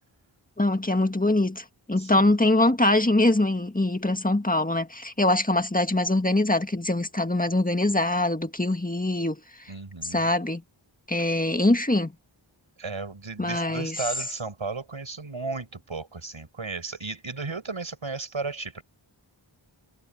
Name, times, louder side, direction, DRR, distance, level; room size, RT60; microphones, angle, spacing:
voice 1, 0.6-9.4 10.0-10.6 11.1-12.1 13.4-14.0, left 2 dB, 15° left, 1.7 m, -23 dB
voice 2, 2.0-2.3 9.7-10.3 12.8-18.8, right 4 dB, 75° right, 6.6 m, -34 dB
wide cardioid pair, 60°, 48 cm